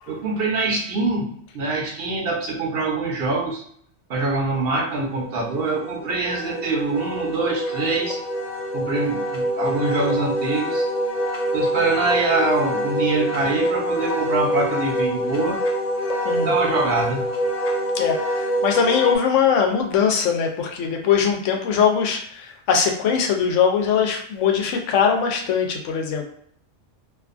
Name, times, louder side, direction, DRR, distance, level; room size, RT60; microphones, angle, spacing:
voice 1, 0.1-1.3 1.5-3.6 4.1-8.2 8.7-10.9 11.5-15.6 16.4-17.2, right 3 dB, 60° right, 0 dB, 0.8 m, -24 dB
Wind instrument woodwind instrument, 4.8-19.2, equal, 55° left, 0.4 m, -25 dB
voice 2, 17.9-26.2, left 7 dB, 85° left, 3 dB, 0.9 m, -21 dB
2.6 x 2.4 x 2.5 m, 0.65 s
omnidirectional pair, 1.2 m